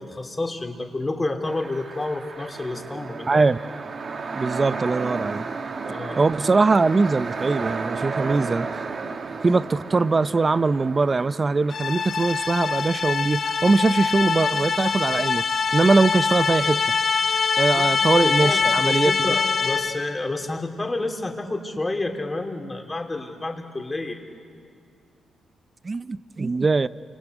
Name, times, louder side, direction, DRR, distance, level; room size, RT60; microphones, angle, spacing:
voice 1, 0.0-3.5 5.9-6.3 17.7-18.0 18.2-24.2, left 2 dB, 25° left, 3 dB, 3.3 m, -30 dB
sound 1, 1.4-12.8, right 4 dB, 55° right, 1.7 m, -33 dB
voice 2, 3.3-3.6 4.3-5.5 6.2-8.7 9.4-15.4 15.7-16.8 17.6-19.4 25.8-26.9, right 3 dB, 35° right, 16 dB, 0.7 m, -21 dB
sound 2, 11.7-20.1, left 5 dB, 55° left, 1.2 m, -23 dB
28.5 x 25.0 x 8.0 m, 2.2 s
cardioid pair, 65°, 0 cm